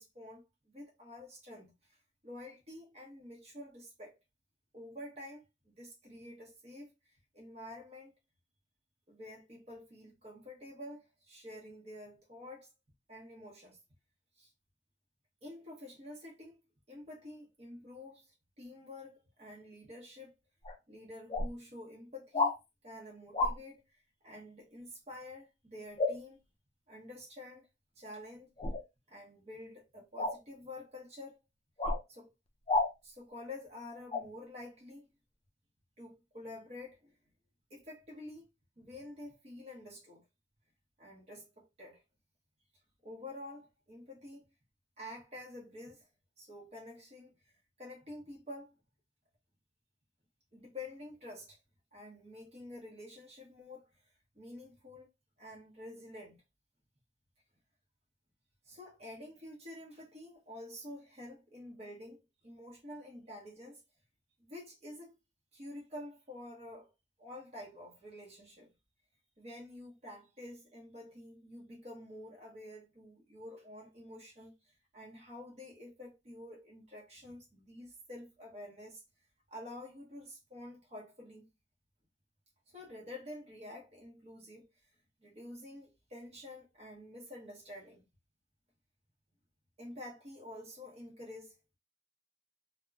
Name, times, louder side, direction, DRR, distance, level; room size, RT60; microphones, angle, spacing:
voice 1, 0.0-1.7 2.2-4.2 4.7-8.1 9.1-12.7 13.1-13.8 14.4-14.5 15.4-16.6 16.9-20.3 20.9-22.5 22.8-26.4 26.9-27.7 28.0-28.5 29.1-31.4 32.1-32.3 33.0-35.1 36.0-37.2 37.7-38.5 38.8-40.2 41.0-42.0 43.0-44.4 45.0-46.1 46.4-47.3 47.8-48.7 50.5-51.6 51.9-53.9 54.3-55.1 55.4-56.4 58.6-63.8 64.4-65.2 65.5-66.9 67.2-68.7 69.4-74.5 74.9-79.0 79.5-81.5 82.7-84.7 85.2-88.1 89.8-91.5, left 1 dB, 35° right, 0.9 m, -49 dB
sound 1, 20.6-20.8 21.3-21.5 22.3-22.6 23.3-23.6 26.0-26.2 28.6-28.8 30.2-30.4 31.8-32.0 32.7-32.9 34.1-34.2, left 2 dB, 30° left, 0.4 m, -30 dB
2.8 x 2.1 x 2.3 m
head